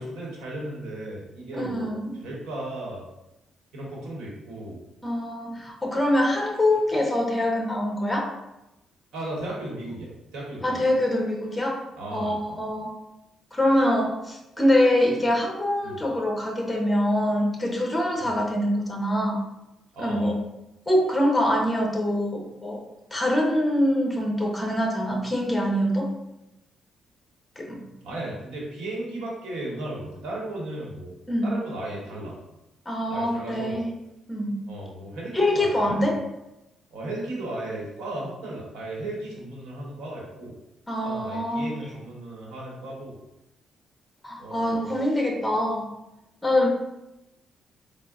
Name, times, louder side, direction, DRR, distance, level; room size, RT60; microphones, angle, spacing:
voice 1, 0.0-1.9 2.2-3.1 3.7-4.8 9.1-10.9 12.0-12.6 15.8-16.0 18.2-18.3 19.9-20.3 28.0-31.1 31.4-32.4 33.1-33.8 34.7-35.7 36.0-36.1 36.9-40.5 41.0-43.1 44.4-44.9, right 1 dB, 80° right, -4 dB, 1.0 m, -35 dB
voice 2, 1.5-2.2 5.0-8.4 10.6-11.8 12.1-12.9 13.5-19.4 20.0-20.3 20.9-22.8 23.1-26.1 27.6-27.8 31.3-31.5 32.9-33.9 34.3-34.6 35.3-36.2 40.9-41.7 44.2-45.9 46.4-46.7, left 1 dB, 10° left, 1 dB, 0.8 m, -24 dB
3.7 x 2.0 x 3.6 m, 0.91 s
cardioid pair, 90°, 0 cm